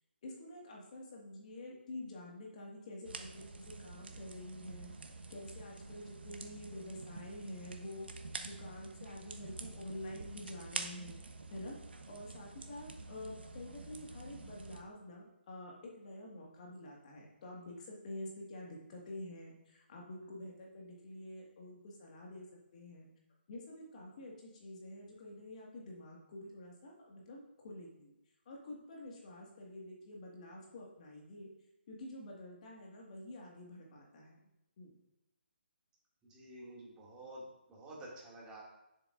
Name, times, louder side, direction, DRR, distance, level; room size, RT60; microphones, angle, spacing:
voice 1, 0.2-4.9 5.3-8.1 8.4-11.2 11.5-11.8 12.1-22.5 22.7-23.1 23.5-28.1 28.5-31.5 31.9-34.4 34.8-35.0, left 1 dB, 40° left, -2 dB, 1.9 m, -48 dB
sound 1, 3.0-14.8, right 3 dB, 65° right, 1.0 m, -47 dB
voice 2, 36.2-38.6, right 1 dB, 15° right, -5 dB, 2.4 m, -50 dB
10.0 x 7.4 x 2.6 m, 0.88 s
figure-of-eight pair, 145°, 6 cm